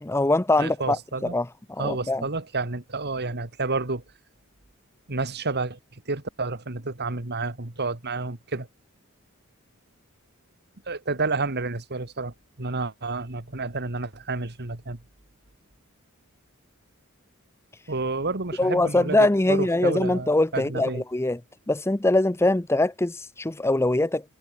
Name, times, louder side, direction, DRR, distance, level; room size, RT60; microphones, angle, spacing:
voice 1, 0.0-1.0 1.3-1.5 1.8-2.2 18.6-21.4 21.7-24.2, left 2 dB, 10° left, 0.7 m, -22 dB
voice 2, 0.6-1.4 1.8-4.0 5.1-8.7 10.9-15.0 17.9-21.0, right 3 dB, 50° right, 2.2 m, -30 dB
head